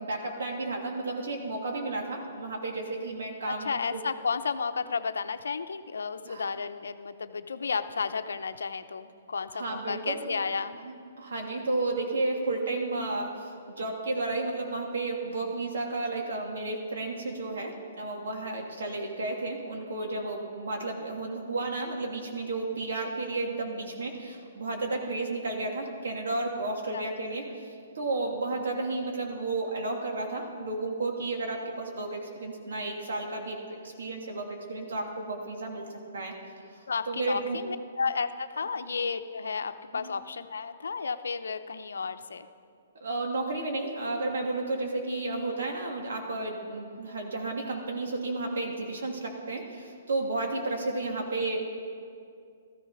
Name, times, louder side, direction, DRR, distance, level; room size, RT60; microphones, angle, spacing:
voice 1, 0.1-4.0 6.2-6.5 9.5-10.4 10.8-27.4 27.9-36.3 37.1-37.6 39.9-40.1 43.0-51.6, right 2 dB, 75° right, 1 dB, 2.9 m, -32 dB
voice 2, 3.5-10.8 26.9-27.0 36.9-42.5, left 5 dB, 85° left, 10 dB, 0.7 m, -32 dB
14.0 x 14.0 x 5.8 m, 2.3 s
hypercardioid pair, 145°, 0 cm